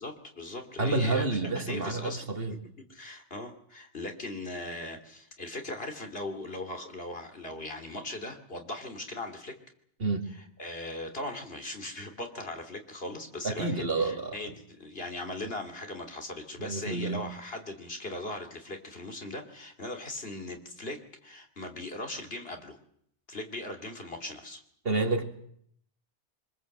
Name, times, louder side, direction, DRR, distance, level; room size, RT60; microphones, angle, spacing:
voice 1, 0.0-2.6 2.9-9.5 10.3-22.8 23.3-24.6, left 2 dB, 55° left, 4 dB, 3.0 m, -39 dB
voice 2, 0.8-2.5 10.0-10.2 13.4-14.5 16.6-17.2 24.8-25.2, right 3 dB, 55° right, 4 dB, 2.6 m, -29 dB
24.5 x 21.0 x 7.8 m, 0.68 s
omnidirectional pair, 1.2 m